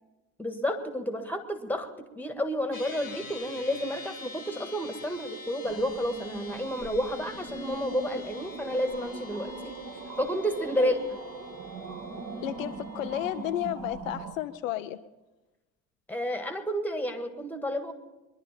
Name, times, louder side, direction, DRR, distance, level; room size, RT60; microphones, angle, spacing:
voice 1, 0.4-1.9 2.2-9.7 10.2-11.0 16.1-17.9, equal, 5° left, 8 dB, 1.6 m, -30 dB
sound 1, 2.7-13.5, left 2 dB, 90° left, 1.8 m, -46 dB
sound 2, 5.6-14.3, right 3 dB, 40° right, 1.8 m, -41 dB
voice 2, 12.4-15.0, left 12 dB, 75° left, 9 dB, 0.7 m, -32 dB
22.5 x 11.0 x 4.2 m, 1.1 s
figure-of-eight pair, 60°, 40 cm